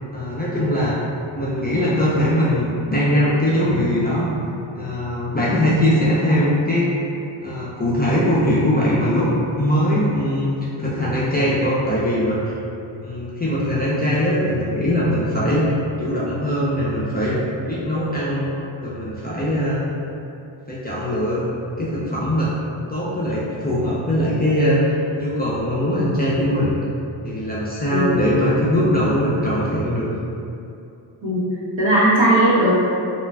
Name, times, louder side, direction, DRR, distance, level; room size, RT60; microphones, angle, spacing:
voice 1, 0.1-1.0 1.3-4.3 4.7-6.9 7.4-9.3 9.6-10.5 10.8-12.5 13.0-17.4 17.7-18.5 18.8-19.8 20.7-21.4 21.8-22.5 22.9-26.8 27.2-30.1, equal, 20° left, -9 dB, 0.3 m, -21 dB
voice 2, 31.8-32.8, right 1 dB, 65° right, -9 dB, 1.1 m, -17 dB
2.4 x 2.2 x 3.2 m, 2.7 s
wide cardioid pair, 105°, 49 cm